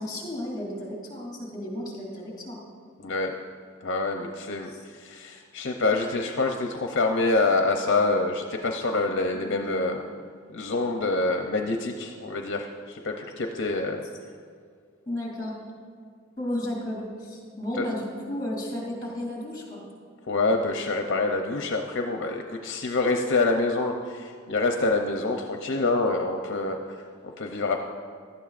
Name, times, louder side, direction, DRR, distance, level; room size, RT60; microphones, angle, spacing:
voice 1, 0.0-2.6 4.7-4.8 9.3-9.8 15.1-15.6 16.4-19.8, left 1 dB, 20° left, -1 dB, 2.9 m, -33 dB
voice 2, 3.0-3.3 3.8-10.0 10.5-14.1 17.7-17.9 20.3-27.8, left 3 dB, 60° left, 3 dB, 0.6 m, -26 dB
16.5 x 12.0 x 2.5 m, 2.1 s
head